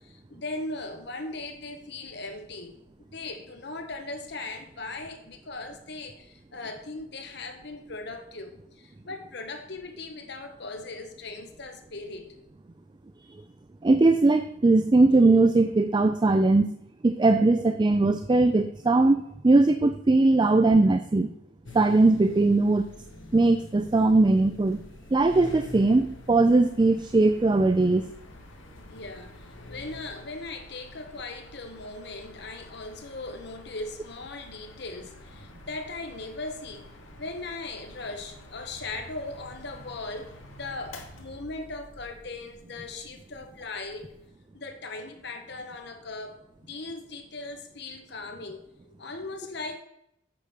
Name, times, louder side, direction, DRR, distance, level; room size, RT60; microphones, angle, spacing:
voice 1, 0.0-2.7 3.0-12.4 28.9-44.1 44.5-48.6 48.9-49.8, left 3 dB, 55° left, 5 dB, 1.2 m, -39 dB
voice 2, 13.8-16.7 17.0-21.3 21.7-22.9 23.3-24.8 25.1-28.1, right 2 dB, 20° right, 9 dB, 0.3 m, -20 dB
sound 1, 21.7-30.2, left 2 dB, 75° left, 1.4 m, -46 dB
Mechanical fan, 24.6-44.3, left 1 dB, 90° left, 1.9 m, -51 dB
8.4 x 5.7 x 6.5 m, 0.77 s
head